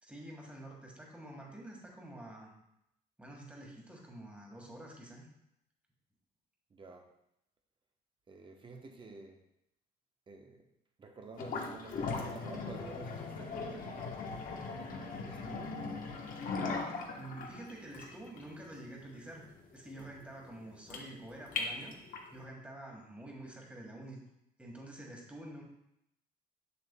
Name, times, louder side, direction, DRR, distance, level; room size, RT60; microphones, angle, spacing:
voice 1, 0.0-2.5 3.2-5.3 17.1-19.5 19.7-22.0 22.3-24.2 24.6-25.6, right 1 dB, 5° right, -1 dB, 1.5 m, -48 dB
voice 2, 6.7-7.1 8.3-9.4 10.3-10.6 11.0-14.1 14.7-15.8, right 3 dB, 30° right, 3 dB, 0.9 m, -51 dB
sound 1, 11.3-22.4, left 4 dB, 55° left, 1.0 m, -39 dB
6.8 x 6.7 x 2.2 m, 0.79 s
cardioid pair, 110°, 17 cm